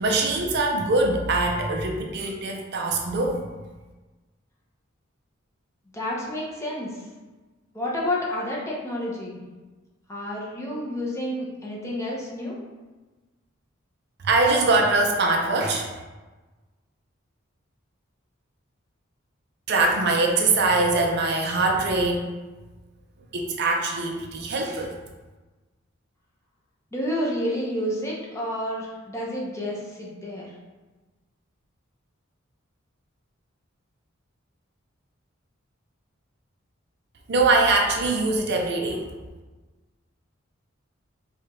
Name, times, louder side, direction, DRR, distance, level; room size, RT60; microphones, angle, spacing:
voice 1, 0.0-3.5 14.2-15.9 19.7-22.3 23.3-24.9 37.3-39.1, right 3 dB, 55° right, 1 dB, 0.5 m, -22 dB
voice 2, 5.9-7.0 7.7-9.4 10.1-12.6 26.9-30.5, left 1 dB, 15° left, -4 dB, 0.7 m, -30 dB
4.7 x 2.4 x 3.0 m, 1.2 s
head